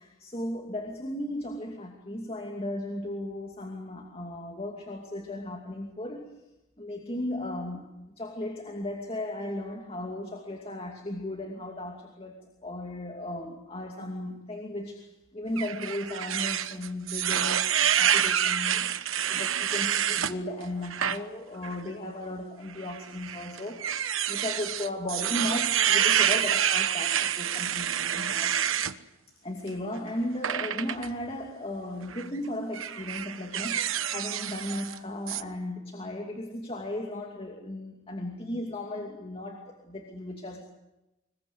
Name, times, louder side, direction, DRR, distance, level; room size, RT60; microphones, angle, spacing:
voice 1, 0.0-6.4 6.8-7.9 8.2-23.9 24.3-28.5 29.4-40.6, left 1 dB, 30° left, 3 dB, 2.6 m, -36 dB
sound 1, 15.6-20.3 20.8-21.2 21.6-21.8 22.8-28.9 30.4-31.1 32.0-32.3 32.7-35.0 35.3-35.4, right 9 dB, 70° right, 1.2 m, -27 dB
26.0 x 22.0 x 8.0 m, 0.95 s
head